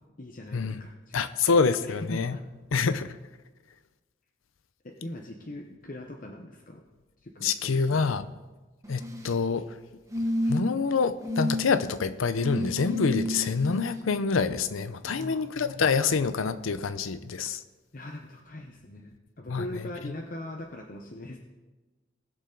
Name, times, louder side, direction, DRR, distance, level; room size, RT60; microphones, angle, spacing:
voice 1, 0.2-1.2 1.5-1.6 2.1-2.4 4.8-6.8 7.2-8.2 15.0-15.4 17.9-21.4, left 1 dB, 40° left, 1 dB, 0.8 m, -41 dB
voice 2, 1.1-2.4 2.7-3.1 7.4-8.3 8.9-9.7 10.5-17.6 19.5-19.7, left 5 dB, 85° left, 13 dB, 0.6 m, -26 dB
sound 1, 8.8-9.4 10.1-10.8 11.2-11.7 12.4-14.0 15.2-15.3, left 1 dB, 15° right, 0.9 m, -30 dB
19.0 x 6.7 x 3.8 m, 1.2 s
head